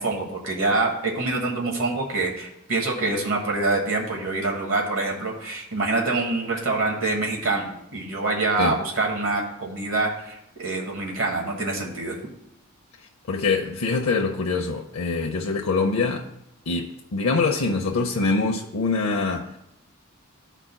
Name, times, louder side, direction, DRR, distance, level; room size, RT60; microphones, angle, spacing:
voice 1, 0.0-12.2, right 3 dB, 70° right, 1.4 m, -25 dB
voice 2, 13.3-16.3 16.7-19.6, left 4 dB, 80° left, 0.6 m, -24 dB
14.5 x 4.9 x 2.2 m
head